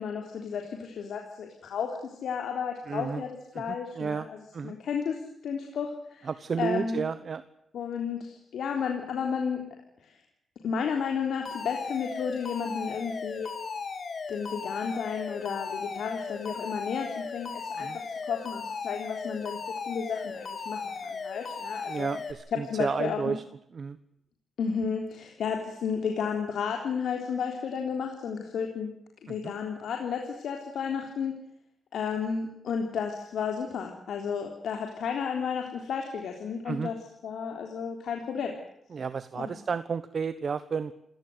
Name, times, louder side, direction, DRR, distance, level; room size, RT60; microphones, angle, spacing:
voice 1, 0.0-5.2 5.4-6.3 6.6-7.0 7.7-9.6 10.0-10.2 10.6-13.5 14.3-19.6 19.9-22.1 22.5-23.4 24.6-28.9 29.2-31.4 31.9-37.0 37.2-38.6 39.4-39.6, left 6 dB, 80° left, 3 dB, 3.6 m, -32 dB
voice 2, 2.9-3.2 3.5-4.3 4.5-4.7 6.2-7.4 17.8-18.0 21.9-23.4 23.7-24.0 29.4-29.5 36.6-36.9 38.9-40.9, right 6 dB, 50° right, 13 dB, 1.1 m, -32 dB
Alarm, 11.5-22.3, left 5 dB, 50° left, 3.6 m, -37 dB
28.0 x 17.5 x 8.0 m, 0.76 s
cardioid pair, 115°, 0 cm